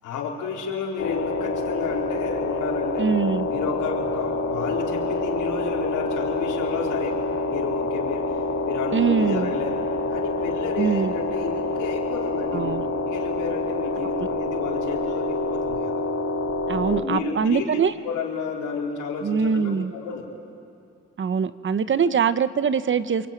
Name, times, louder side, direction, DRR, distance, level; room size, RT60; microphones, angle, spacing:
voice 1, 0.0-3.1 3.4-8.4 8.6-9.8 10.1-12.7 13.1-16.0 16.7-17.6 18.0-20.3, left 5 dB, 85° left, -2 dB, 4.6 m, -31 dB
sound 1, 1.0-17.0, left 2 dB, 55° left, 3.1 m, -27 dB
voice 2, 3.0-3.5 8.9-9.5 10.8-11.1 12.5-12.9 16.7-17.9 19.2-19.9 21.2-23.3, right 6 dB, 40° right, 13 dB, 1.0 m, -23 dB
27.0 x 24.0 x 9.3 m, 2.4 s
cardioid pair, 90°, 30 cm